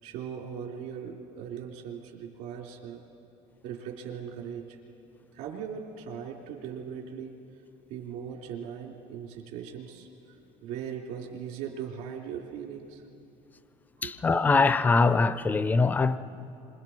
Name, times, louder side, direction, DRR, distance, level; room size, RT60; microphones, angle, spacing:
voice 1, 0.0-3.0 3.6-4.8 5.3-7.4 7.9-10.1 10.6-13.0 14.0-14.1, right 8 dB, 75° right, 3.3 m, -39 dB
voice 2, 14.0-16.2, left 4 dB, 10° left, 0.4 m, -23 dB
27.5 x 26.5 x 4.5 m
cardioid pair, 175°, 14 cm